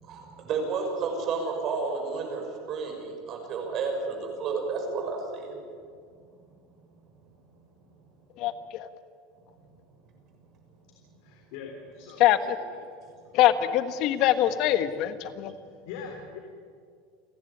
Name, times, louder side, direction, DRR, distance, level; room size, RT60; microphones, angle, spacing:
voice 1, 0.0-5.6, right 4 dB, 40° right, 2 dB, 6.4 m, -31 dB
voice 2, 8.4-8.9 12.2-12.6 13.3-15.5, left 12 dB, 55° left, 10 dB, 1.5 m, -23 dB
voice 3, 11.2-12.2 12.6-12.8 15.6-16.4, left 6 dB, 70° left, 1 dB, 3.7 m, -42 dB
30.0 x 11.5 x 9.9 m, 2.1 s
supercardioid pair, 140°, 0 cm